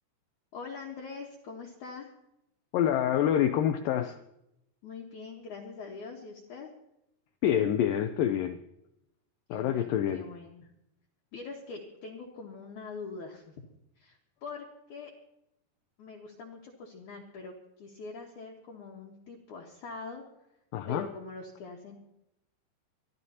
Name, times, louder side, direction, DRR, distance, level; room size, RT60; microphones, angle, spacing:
voice 1, 0.5-2.1 4.8-6.7 9.5-10.7 11.3-13.5 14.0-15.1 16.0-20.2 20.9-22.0, left 4 dB, 60° left, -1 dB, 2.4 m, -43 dB
voice 2, 2.7-4.2 7.4-8.6 9.5-10.3 20.7-21.1, left 10 dB, 90° left, 8 dB, 1.9 m, -27 dB
23.5 x 14.0 x 2.8 m, 0.82 s
omnidirectional pair, 4.7 m